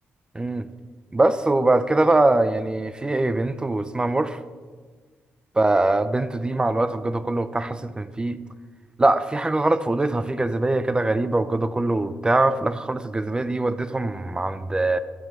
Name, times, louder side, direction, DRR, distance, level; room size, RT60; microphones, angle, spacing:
voice 1, 0.4-0.7 1.1-4.4 5.6-8.4 9.0-15.0, right 2 dB, 20° right, 12 dB, 0.4 m, -22 dB
12.0 x 5.9 x 4.4 m, 1.5 s
cardioid pair, 80°, 4 cm